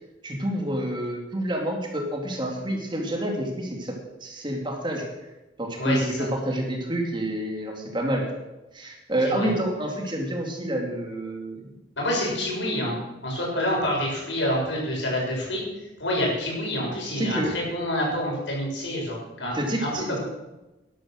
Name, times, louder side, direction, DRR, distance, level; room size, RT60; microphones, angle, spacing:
voice 1, 0.2-5.0 5.6-8.2 8.7-11.8 17.2-17.5 19.5-20.2, right 1 dB, 25° right, 1 dB, 2.5 m, -28 dB
voice 2, 5.8-6.3 9.3-9.5 12.0-13.0 13.2-15.6 16.0-20.2, left 1 dB, 80° left, -3 dB, 6.7 m, -27 dB
12.5 x 11.5 x 6.5 m, 1.0 s
head